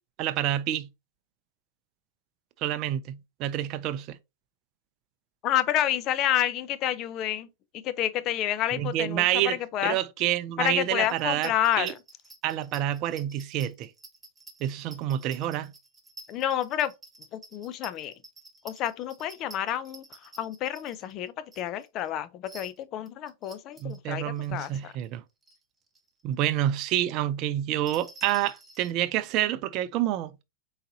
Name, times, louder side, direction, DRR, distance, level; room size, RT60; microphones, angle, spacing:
voice 1, 0.2-0.9 2.6-4.2 8.8-11.9 12.4-13.9 14.6-15.7 23.8-25.2 26.2-30.3, right 12 dB, 45° right, 0.4 m, -28 dB
voice 2, 5.4-7.5 7.8-10.0 10.6-11.9 16.3-16.9 17.3-18.1 18.6-20.0 20.4-24.2 24.5-24.9, left 12 dB, 40° left, 0.5 m, -29 dB
sound 1, 11.0-22.1 22.5-24.0 24.4-25.2 25.4-25.6 25.9-26.2 26.5-26.6 27.6-28.9, right 2 dB, 15° right, 0.9 m, -50 dB
4.0 x 3.9 x 2.7 m
hypercardioid pair, 115°, 0 cm